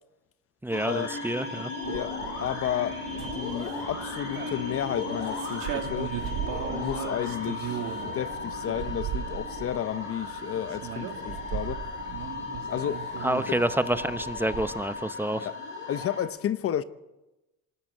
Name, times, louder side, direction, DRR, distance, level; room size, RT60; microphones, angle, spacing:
voice 1, 0.6-1.7 13.2-15.5, right 1 dB, 5° right, 0.9 m, -28 dB
sound 1, 0.7-16.2, left 4 dB, 85° left, 5.6 m, -36 dB
voice 2, 1.8-6.1 6.7-11.8 12.7-13.1 15.3-15.6 15.9-16.8, left 10 dB, 45° left, 0.8 m, -32 dB
sound 2, 1.8-14.3, right 11 dB, 80° right, 2.7 m, -39 dB
sound 3, 3.2-4.4 5.2-7.1 7.6-9.8 10.5-10.6 11.2-12.3 12.9-13.2 13.6-15.0, right 10 dB, 60° right, 3.5 m, -39 dB
26.0 x 13.5 x 9.1 m
cardioid pair, 125°, 32 cm